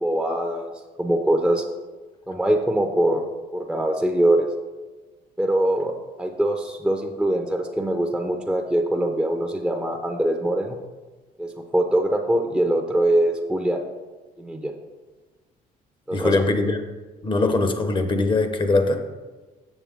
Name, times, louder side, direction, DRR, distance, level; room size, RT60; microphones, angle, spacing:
voice 1, 0.0-0.7 1.0-1.6 2.3-3.2 3.5-4.5 5.4-10.8 11.4-13.8 14.4-14.7 16.1-16.4, right 1 dB, 5° right, 2 dB, 0.6 m, -23 dB
voice 2, 16.1-16.8 17.2-19.0, left 3 dB, 30° left, 7 dB, 0.9 m, -21 dB
7.2 x 6.9 x 3.5 m, 1.3 s
cardioid pair, 110°, 17 cm